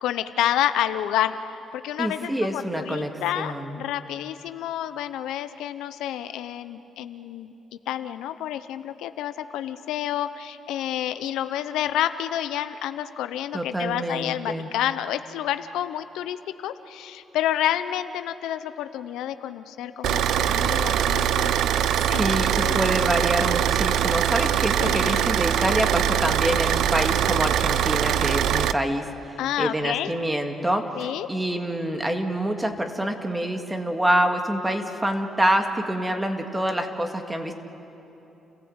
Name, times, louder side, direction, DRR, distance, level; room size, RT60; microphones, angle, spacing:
voice 1, 0.0-7.5 7.9-21.5 22.1-22.8 24.8-25.2 29.4-30.1 30.9-31.3, left 11 dB, 90° left, 11 dB, 0.7 m, -29 dB
voice 2, 2.0-3.8 13.5-14.7 22.0-29.1 29.6-30.8 31.3-37.5, right 1 dB, 10° right, 5 dB, 2.1 m, -26 dB
Car / Idling, 20.0-28.7, right 10 dB, 80° right, 0.6 m, -22 dB
30.0 x 16.0 x 8.1 m, 3.0 s
cardioid pair, 90°, 0 cm